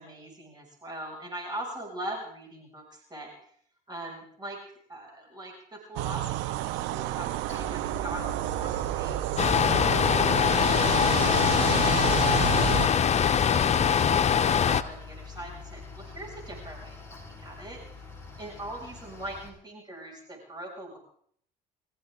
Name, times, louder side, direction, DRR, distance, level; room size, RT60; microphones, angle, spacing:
voice 1, 0.0-3.3 3.9-4.6 4.9-18.0 18.4-21.0, right 1 dB, 20° right, -1 dB, 6.7 m, -42 dB
sound 1, 6.0-12.9, right 15 dB, 75° right, 0.9 m, -30 dB
Mechanical fan, 7.5-19.5, left 4 dB, 15° left, 6.6 m, -44 dB
sound 2, 9.4-14.8, left 7 dB, 35° left, 0.9 m, -23 dB
24.5 x 15.0 x 3.9 m, 0.62 s
supercardioid pair, 85°, 19 cm